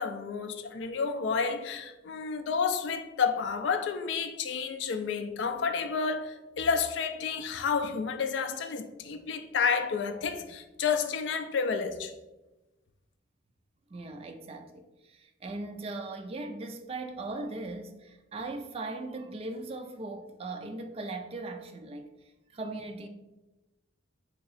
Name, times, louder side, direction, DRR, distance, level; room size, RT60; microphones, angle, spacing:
voice 1, 0.0-12.1, left 5 dB, 70° left, 0.3 m, -30 dB
voice 2, 13.9-22.1 22.5-23.1, right 2 dB, 30° right, 0.3 m, -39 dB
2.9 x 2.7 x 3.9 m
head